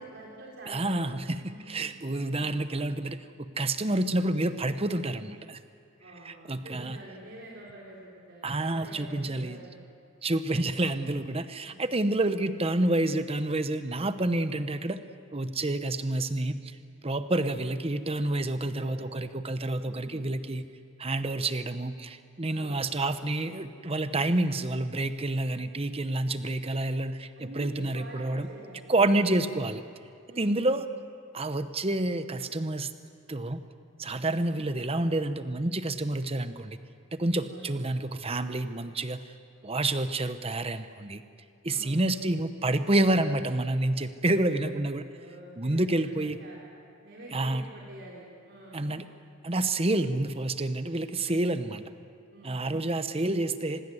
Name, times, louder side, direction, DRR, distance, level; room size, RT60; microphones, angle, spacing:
voice 1, 0.0-1.0 1.4-2.0 6.0-9.8 10.5-10.9 11.6-11.9 18.5-19.1 19.8-20.3 22.5-22.8 27.4-29.4 30.3-30.8 34.4-34.5 37.5-37.7 41.7-42.0 44.5-44.7 45.0-46.6 47.0-48.9 51.2-51.5 52.3-53.0, right 1 dB, 55° right, -4 dB, 3.9 m, -47 dB
voice 2, 0.7-5.6 6.2-7.0 8.4-9.6 10.2-15.0 15.3-16.8 17.0-20.7 21.0-28.5 28.9-29.8 30.4-30.9 31.3-32.9 33.3-33.6 34.0-36.8 37.1-39.2 39.6-41.2 41.6-45.0 45.6-46.4 47.3-47.6 48.7-49.1 49.4-51.8 52.4-53.8, right 2 dB, 25° right, 11 dB, 0.9 m, -28 dB
26.0 x 20.5 x 7.9 m, 2.4 s
head